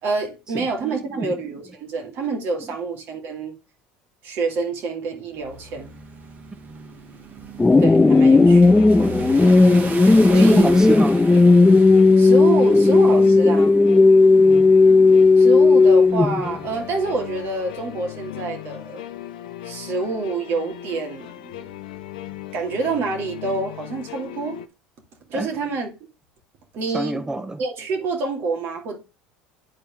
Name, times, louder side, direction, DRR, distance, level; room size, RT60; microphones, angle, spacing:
voice 1, 0.0-3.6 4.2-6.0 7.8-8.9 10.3-10.7 12.2-13.7 15.4-19.0 19.6-21.7 22.5-24.6 25.3-25.9 26.7-27.2 27.6-29.0, right 4 dB, 60° right, 2.5 m, -27 dB
voice 2, 0.5-1.3 10.3-11.2 12.7-12.8 14.4-14.7 25.3-25.5 26.9-27.6, right 2 dB, 15° right, 0.8 m, -27 dB
sound 1, 5.4-17.5, right 3 dB, 40° right, 1.8 m, -38 dB
sound 2, 7.6-16.6, left 3 dB, 10° left, 0.3 m, -14 dB
sound 3, 7.8-24.7, left 13 dB, 85° left, 0.8 m, -38 dB
10.0 x 4.3 x 3.6 m
hypercardioid pair, 80°, 4 cm